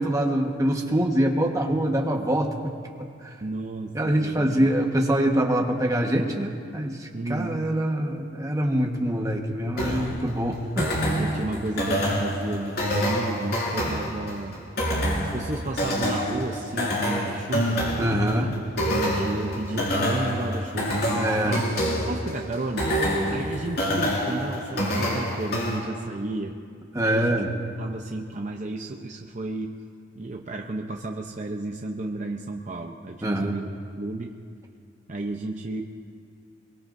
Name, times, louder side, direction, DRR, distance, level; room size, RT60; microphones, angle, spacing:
voice 1, 0.0-2.7 3.9-10.9 18.0-18.5 21.2-21.6 26.9-27.5 33.2-33.5, right 1 dB, 20° right, 1 dB, 1.3 m, -24 dB
voice 2, 3.4-4.7 7.1-7.6 11.2-14.6 15.3-17.8 18.4-26.6 27.0-27.4 27.8-29.8 30.2-33.7 34.0-34.3 35.1-35.8, right 2 dB, 40° right, 2 dB, 0.7 m, -33 dB
sound 1, 9.8-25.8, equal, 55° left, 4.4 m, -27 dB
24.0 x 22.5 x 2.6 m, 2.3 s
head